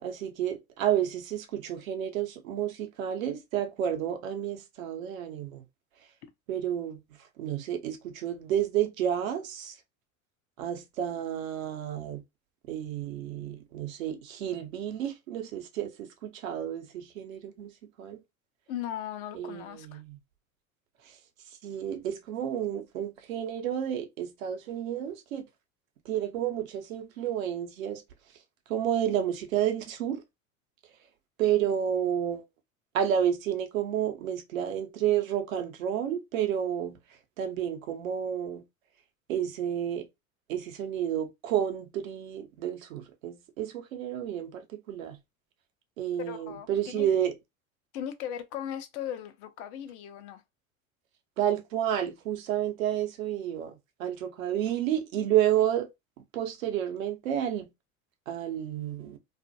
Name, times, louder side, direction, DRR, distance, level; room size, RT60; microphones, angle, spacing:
voice 1, 0.0-5.6 6.5-7.0 7.4-9.7 10.6-12.2 12.7-17.7 18.0-18.2 19.3-20.2 21.1-21.2 21.6-25.4 26.0-28.0 28.7-30.2 31.4-32.4 32.9-37.0 37.4-38.6 39.3-40.1 40.5-45.2 46.0-47.3 51.4-53.7 54.0-55.9 56.3-57.7 58.3-59.2, right 10 dB, 70° right, 0.7 m, -30 dB
voice 2, 18.7-20.0 46.2-47.1 47.9-50.4, left 10 dB, 55° left, 0.6 m, -38 dB
2.5 x 2.1 x 2.7 m
figure-of-eight pair, 75°, 42 cm